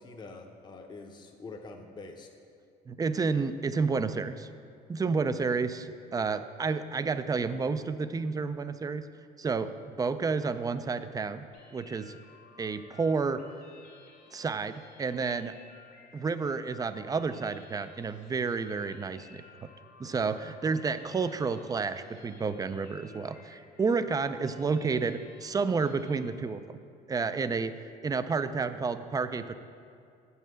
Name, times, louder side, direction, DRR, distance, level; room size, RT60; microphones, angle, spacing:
voice 1, 0.0-2.3, left 3 dB, 25° left, 3 dB, 0.8 m, -45 dB
voice 2, 2.9-4.5 4.9-9.0 9.4-12.2 12.6-13.4 14.3-15.6 16.1-19.4 20.0-26.8 27.1-27.7 28.0-29.6, right 4 dB, 20° right, 11 dB, 0.4 m, -30 dB
sound 1, 11.5-26.3, left 5 dB, 75° left, 1.8 m, -56 dB
7.4 x 5.5 x 7.5 m, 2.5 s
cardioid pair, 110°, 17 cm